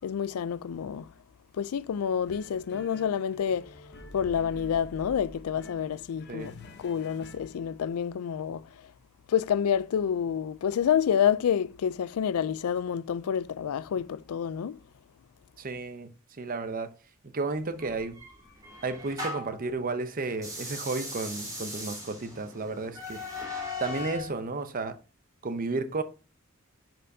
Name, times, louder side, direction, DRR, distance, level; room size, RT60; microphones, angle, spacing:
voice 1, 0.0-1.1 1.5-3.8 4.1-6.5 6.8-8.7 9.3-14.8, left 8 dB, 85° left, 0.4 m, -28 dB
sound 1, 2.2-8.0, left 1 dB, 50° left, 0.9 m, -48 dB
voice 2, 15.6-16.1 16.4-16.9 17.2-18.2 18.8-23.3 23.8-25.0 25.4-26.0, right 3 dB, 40° right, 0.6 m, -32 dB
sound 2, 17.8-19.6 20.3-24.3, left 2 dB, 15° right, 2.9 m, -38 dB
9.9 x 4.5 x 2.7 m
head